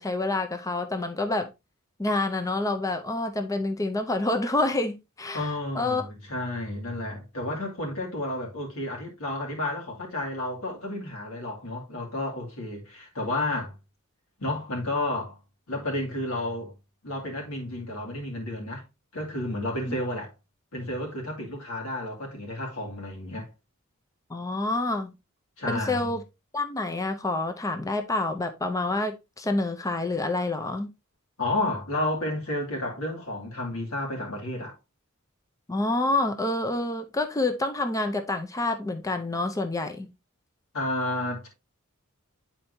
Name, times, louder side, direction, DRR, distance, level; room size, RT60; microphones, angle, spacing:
voice 1, 0.0-1.5 2.0-5.5 5.7-6.0 19.9-20.0 24.3-25.1 25.7-26.2 26.5-30.9 35.7-40.1, left 2 dB, 15° left, 0.5 m, -28 dB
voice 2, 5.3-13.7 14.4-15.4 15.7-16.7 17.0-18.8 19.1-20.3 20.7-23.5 25.6-26.2 31.4-34.7 40.7-41.5, left 1 dB, 85° left, 2.5 m, -31 dB
9.3 x 4.4 x 2.7 m
head